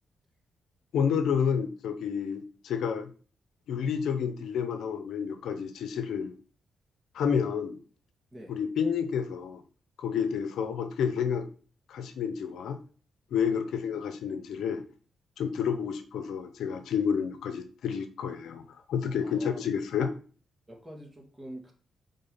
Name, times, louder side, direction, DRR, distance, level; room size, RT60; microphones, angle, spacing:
voice 1, 0.9-3.1 3.7-6.3 7.1-7.8 8.5-9.6 10.0-11.5 11.9-12.8 13.3-14.8 15.4-18.6 18.9-20.1, left 7 dB, 85° left, 9 dB, 0.7 m, -30 dB
voice 2, 19.2-19.7 20.7-21.7, right 1 dB, 25° right, 0 dB, 2.5 m, -46 dB
5.6 x 3.8 x 5.4 m, 0.41 s
cardioid pair, 70°, 0 cm